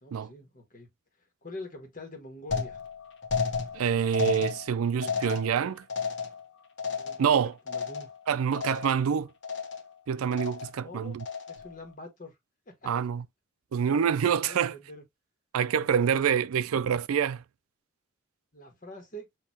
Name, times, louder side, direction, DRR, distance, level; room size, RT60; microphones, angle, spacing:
voice 1, 0.0-0.9 1.4-2.8 7.0-8.1 10.8-11.2 11.5-12.4 12.7-12.9 14.3-15.0 15.7-16.4 18.5-19.3, left 1 dB, 40° left, 1.6 m, -45 dB
sound 1, 2.5-8.3 8.5-9.1 9.4-10.0 10.3-10.8 11.2-11.7, left 5 dB, 60° left, 1.0 m, -33 dB
voice 2, 3.7-5.8 7.2-7.5 8.3-9.3 10.1-11.2 12.9-13.2 13.7-14.7 15.5-17.4, right 7 dB, 85° right, 0.4 m, -26 dB
6.4 x 2.9 x 2.7 m
head